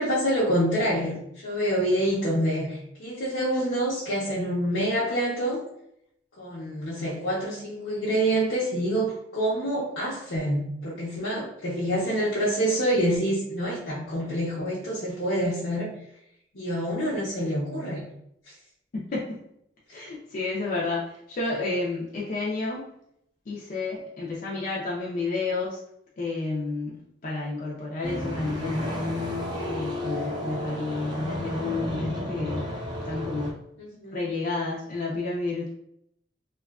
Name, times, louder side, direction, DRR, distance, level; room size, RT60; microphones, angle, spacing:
voice 1, 0.0-5.6 6.4-15.9 16.5-18.0 33.8-34.2, right 1 dB, 90° left, -8 dB, 0.7 m, -27 dB
voice 2, 18.9-19.4 19.9-22.9 23.5-25.8 26.2-29.0 29.7-32.7 33.0-33.6 34.1-35.7, left 3 dB, 50° left, -5 dB, 0.5 m, -31 dB
sound 1, 28.0-33.5, left 1 dB, 25° right, 0.6 m, -32 dB
2.7 x 2.3 x 2.3 m, 0.74 s
head